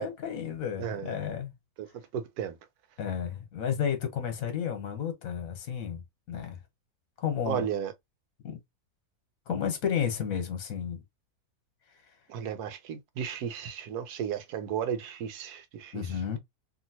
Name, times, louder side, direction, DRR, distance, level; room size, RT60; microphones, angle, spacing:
voice 1, 0.0-1.5 3.0-6.0 6.3-6.6 7.2-7.6 8.4-8.6 9.5-11.0 15.9-16.4, left 8 dB, 65° left, 1.4 m, -32 dB
voice 2, 0.8-1.1 1.8-1.9 2.1-2.6 7.5-7.9 12.3-16.0, right 8 dB, 80° right, 1.2 m, -34 dB
2.9 x 2.8 x 2.7 m
omnidirectional pair, 1.7 m